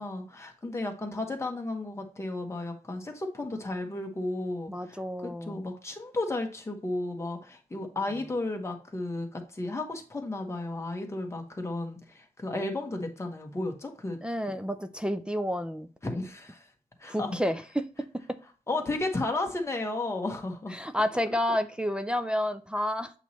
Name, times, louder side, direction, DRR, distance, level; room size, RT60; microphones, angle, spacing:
voice 1, 0.0-14.2 14.4-14.5 16.0-16.7 17.0-17.4 18.7-20.7, left 2 dB, 20° left, 3 dB, 1.1 m, -33 dB
voice 2, 4.7-5.7 14.2-16.2 17.1-17.6 20.7-23.1, equal, 5° right, 7 dB, 0.4 m, -30 dB
8.0 x 3.0 x 4.1 m, 0.38 s
wide cardioid pair, 180°, 15 cm